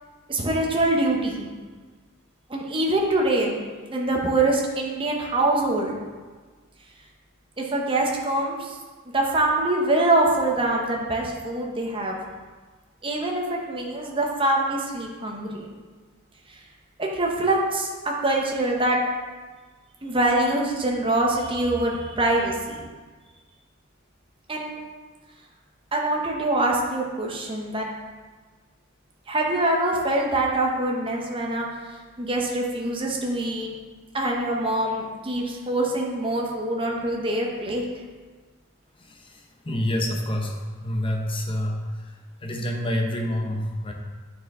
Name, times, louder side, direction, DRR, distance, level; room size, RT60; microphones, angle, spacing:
voice 1, 0.3-1.5 2.5-3.6 3.9-6.0 7.6-8.8 9.1-12.2 13.0-15.7 17.0-19.0 20.0-22.8 24.5-24.8 25.9-27.8 29.3-31.7 32.2-33.7 34.1-37.8, right 2 dB, 25° right, -1 dB, 0.9 m, -24 dB
voice 2, 39.7-40.5 40.8-41.8 42.4-43.9, left 1 dB, 25° left, 1 dB, 0.7 m, -27 dB
9.1 x 4.3 x 3.7 m, 1.4 s
head